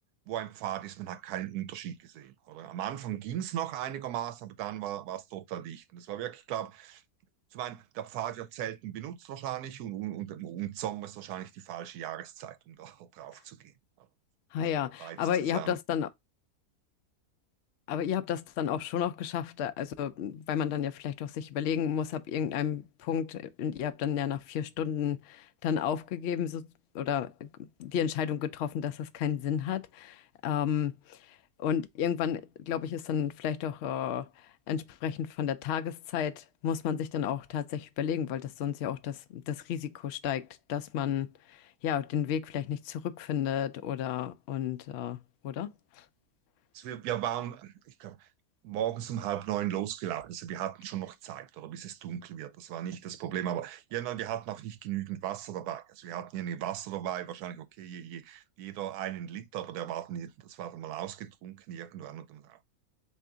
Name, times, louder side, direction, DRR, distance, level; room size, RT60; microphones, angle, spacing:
voice 1, 0.3-7.0 7.5-13.7 15.0-15.8 46.7-48.3 48.6-62.6, right 11 dB, 80° right, 1.1 m, -37 dB
voice 2, 14.5-16.1 17.9-26.7 26.9-27.5 27.8-31.2 31.6-34.3 34.7-45.7 46.0-46.1, left 9 dB, 80° left, 0.5 m, -32 dB
3.4 x 2.8 x 3.7 m
omnidirectional pair, 1.6 m